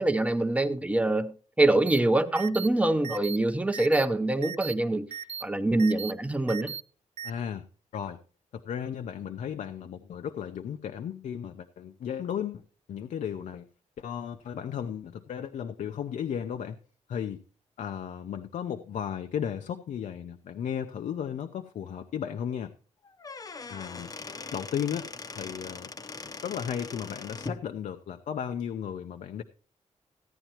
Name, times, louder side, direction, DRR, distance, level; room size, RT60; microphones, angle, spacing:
voice 1, 0.0-5.1 5.4-6.7, right 2 dB, 10° right, 0.8 m, -25 dB
sound 1, 1.9-2.0 2.4-2.7 3.0-3.4 3.7-4.0 4.4-4.7 5.1-5.4 5.8-6.1 6.5-6.8 7.2-7.3, right 7 dB, 60° right, 0.7 m, -37 dB
voice 2, 7.2-7.7 7.9-8.2 8.5-12.6 12.9-13.6 14.0-16.8 17.1-17.4 17.8-22.7 23.7-24.1 24.5-25.1 25.3-25.9 26.4-29.4, left 8 dB, 75° left, 0.7 m, -35 dB
Squeak / Wood, 23.0-27.6, left 4 dB, 30° left, 0.8 m, -40 dB
15.5 x 10.0 x 3.0 m
wide cardioid pair, 135°, 13 cm